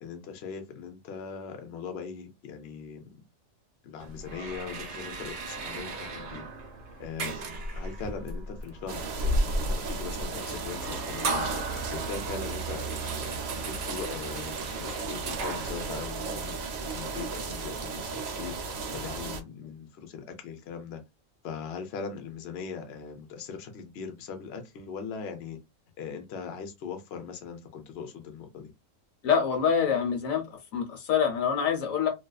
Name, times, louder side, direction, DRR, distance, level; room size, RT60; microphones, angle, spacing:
voice 1, 0.0-3.1 3.8-6.5 7.0-7.4 7.7-11.6 11.9-16.5 16.9-18.6 18.9-21.0 21.4-25.6 26.0-28.7, left 6 dB, 60° left, 0.8 m, -40 dB
sound 1, 4.0-16.0, right 2 dB, 65° right, 0.8 m, -34 dB
sound 2, 8.9-19.4, right 4 dB, 90° right, 0.3 m, -36 dB
voice 2, 29.2-30.4 30.7-32.1, left 7 dB, 90° left, 1.3 m, -25 dB
2.6 x 2.3 x 2.3 m
omnidirectional pair, 1.4 m